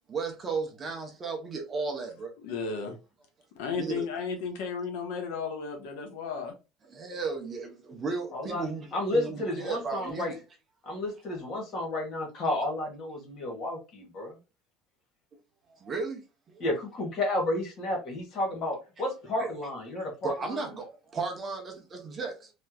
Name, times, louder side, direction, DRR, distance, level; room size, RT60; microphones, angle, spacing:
voice 1, 0.1-2.3 3.7-4.0 6.9-10.4 15.7-16.2 16.5-16.6 19.4-19.5 20.2-22.5, right 4 dB, 20° right, 0.7 m, -35 dB
voice 2, 2.4-2.9 3.6-6.5, left 5 dB, 85° left, 1.0 m, -34 dB
voice 3, 8.3-8.6 8.9-10.3 10.8-14.4 16.6-20.6, left 1 dB, 35° left, 1.6 m, -31 dB
3.3 x 3.0 x 2.3 m
cardioid pair, 170°, 0 cm